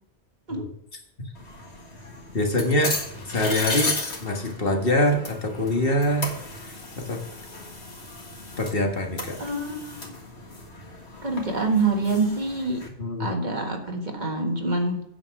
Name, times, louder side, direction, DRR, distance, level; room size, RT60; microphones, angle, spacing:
sound 1, 1.3-12.9, left 2 dB, 80° left, 2.2 m, -35 dB
voice 1, 2.3-3.0 3.3-3.9 4.2-6.3 7.0-7.2 8.6-9.4 13.0-13.3, left 1 dB, 60° left, 2 dB, 1.7 m, -24 dB
voice 2, 9.4-10.1 11.2-12.8 13.2-15.0, right 3 dB, 45° right, 2 dB, 1.7 m, -26 dB
9.0 x 7.2 x 5.9 m, 0.77 s
omnidirectional pair, 1.1 m